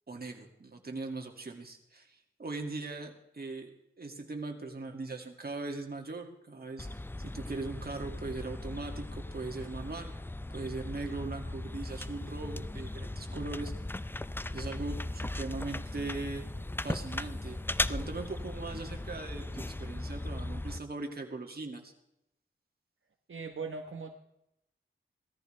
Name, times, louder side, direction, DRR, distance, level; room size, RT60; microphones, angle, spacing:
voice 1, 0.1-3.7 4.0-6.9 7.2-10.1 10.5-13.7 14.5-16.5 16.8-17.6 17.9-21.9, right 3 dB, 50° right, 3 dB, 2.3 m, -40 dB
sound 1, 6.8-20.8, left 1 dB, 10° left, 0.4 m, -38 dB
voice 2, 23.3-24.2, right 4 dB, 70° right, 3 dB, 1.2 m, -39 dB
17.5 x 14.0 x 3.3 m, 0.83 s
wide cardioid pair, 70°, 21 cm